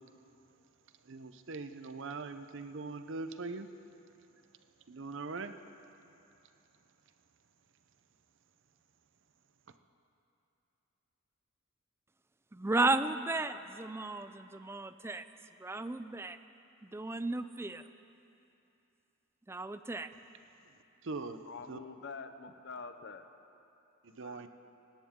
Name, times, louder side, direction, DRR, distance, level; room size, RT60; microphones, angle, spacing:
voice 1, 1.1-3.7 4.9-5.6 21.0-21.4 21.7-21.8 24.0-24.5, right 3 dB, 60° right, 0.7 m, -41 dB
voice 2, 12.5-15.2 15.6-16.4 16.9-17.8 19.5-20.1, right 2 dB, 10° right, 0.3 m, -34 dB
voice 3, 21.4-23.3 24.1-24.5, left 4 dB, 55° left, 0.8 m, -46 dB
18.5 x 16.5 x 3.7 m
head